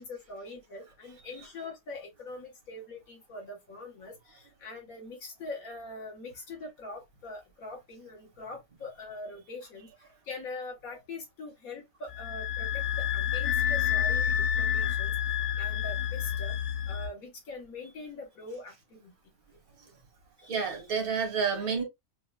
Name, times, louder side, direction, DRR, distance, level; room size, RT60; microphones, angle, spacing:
voice 1, 0.0-15.1 15.6-16.5 16.9-19.1 19.8-20.0 20.4-20.5, left 2 dB, 75° left, 1.8 m, -43 dB
sound 1, 12.1-17.1, left 9 dB, 60° left, 0.7 m, -29 dB
voice 2, 20.4-21.8, right 6 dB, 90° right, 1.8 m, -29 dB
6.0 x 2.1 x 2.3 m
omnidirectional pair, 1.5 m